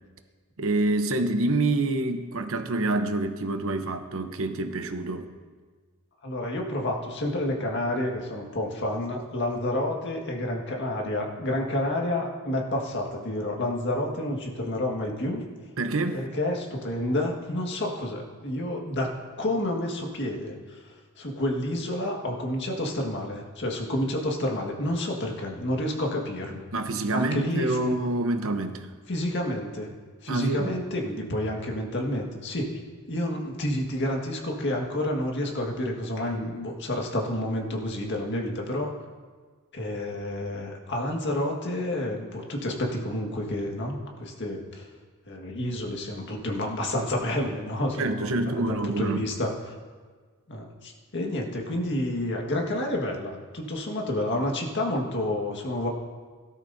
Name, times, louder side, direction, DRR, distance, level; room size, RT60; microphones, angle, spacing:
voice 1, 0.6-5.3 15.8-16.2 26.7-28.9 30.3-30.7 48.0-49.2, right 2 dB, 65° right, 7 dB, 0.9 m, -27 dB
voice 2, 6.2-15.4 16.1-20.8 21.2-26.6 27.1-28.0 29.1-29.9 30.2-32.8 33.1-38.9 39.7-44.9 45.3-49.7 50.5-55.9, left 1 dB, 55° left, 0 dB, 1.7 m, -29 dB
17.0 x 12.0 x 2.7 m, 1.5 s
head